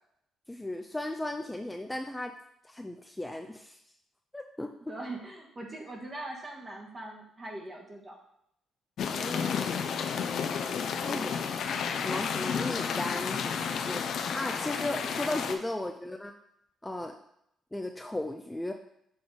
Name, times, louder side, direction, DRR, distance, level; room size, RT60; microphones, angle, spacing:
voice 1, 0.5-2.3 2.6-3.8 4.3-4.9 9.1-9.9 11.0-11.6 12.0-16.3 16.8-17.1 17.7-18.7, left 1 dB, 10° left, 4 dB, 0.4 m, -36 dB
voice 2, 4.9-8.2 10.6-11.3, right 2 dB, 30° right, 0 dB, 1.5 m, -42 dB
sound 1, 9.0-15.5, left 6 dB, 65° left, 0.5 m, -31 dB
6.7 x 3.7 x 3.9 m, 0.76 s
cardioid pair, 90°, 0 cm